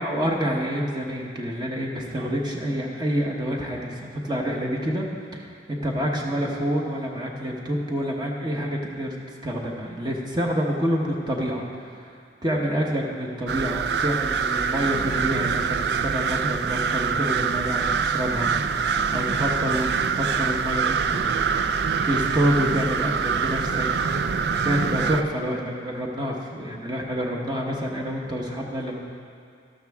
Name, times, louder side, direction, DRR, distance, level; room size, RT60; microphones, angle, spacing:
voice 1, 0.0-9.1 9.4-12.1 12.4-18.5 18.8-19.9 20.2-21.2 22.0-23.9 24.6-29.0, equal, 25° right, -1 dB, 1.0 m, -27 dB
sound 1, 13.5-25.2, right 6 dB, 60° right, 0.4 m, -25 dB
sound 2, 18.9-25.0, right 1 dB, 80° right, 1.2 m, -43 dB
13.0 x 12.5 x 3.6 m, 2.3 s
head